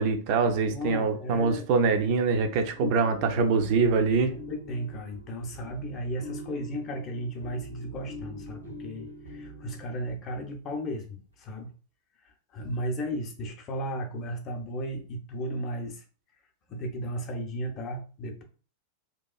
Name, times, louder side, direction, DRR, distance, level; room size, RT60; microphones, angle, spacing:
voice 1, 0.0-4.3, right 4 dB, 45° right, 7 dB, 0.4 m, -24 dB
voice 2, 0.6-1.7 2.8-2.9 4.3-11.7 12.5-16.0 16.7-18.4, equal, 30° left, 3 dB, 0.6 m, -35 dB
sound 1, 2.6-10.5, equal, 85° right, 1.1 m, -44 dB
2.9 x 2.3 x 2.2 m, 0.39 s
figure-of-eight pair, 90°, 0 cm